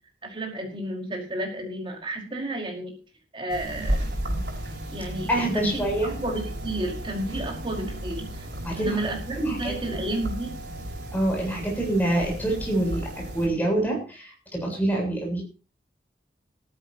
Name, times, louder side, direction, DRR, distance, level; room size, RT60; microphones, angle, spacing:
voice 1, 0.2-2.9 3.3-4.1 4.9-5.3 5.5-5.9 6.2-8.5 8.7-10.5, right 1 dB, 30° right, 0 dB, 5.2 m, -31 dB
sound 1, 3.5-13.5, right 1 dB, 75° right, 6.3 m, -34 dB
voice 2, 5.3-6.1 8.6-9.1 9.5-10.0 11.1-15.4, right 1 dB, 10° left, -1 dB, 7.9 m, -26 dB
18.0 x 14.5 x 3.0 m, 0.34 s
head